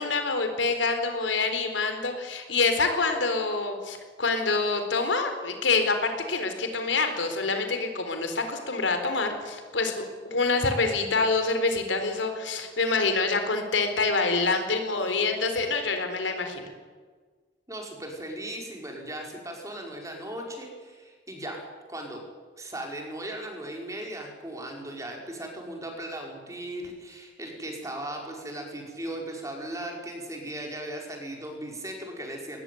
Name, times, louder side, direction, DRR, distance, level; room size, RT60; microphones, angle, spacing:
voice 1, 0.0-16.7, left 3 dB, 90° left, 6 dB, 4.1 m, -26 dB
voice 2, 17.7-21.6 21.9-22.2 22.6-32.6, right 1 dB, 20° right, 1 dB, 5.1 m, -37 dB
21.5 x 19.5 x 9.4 m, 1.5 s
head